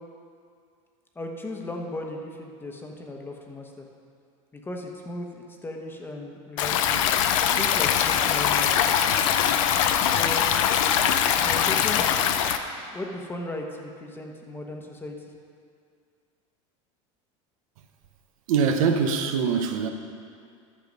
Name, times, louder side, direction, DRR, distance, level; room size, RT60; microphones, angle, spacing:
voice 1, 1.1-3.9 4.5-7.0 7.5-8.9 10.1-10.5 11.4-12.5 12.8-15.2, left 1 dB, 10° left, 2 dB, 1.1 m, -36 dB
Stream, 6.6-12.6, left 9 dB, 75° left, 0.6 m, -22 dB
voice 2, 18.5-19.9, right 6 dB, 85° right, 6 dB, 0.9 m, -23 dB
11.0 x 6.8 x 5.3 m, 2.2 s
supercardioid pair, 130°, 17 cm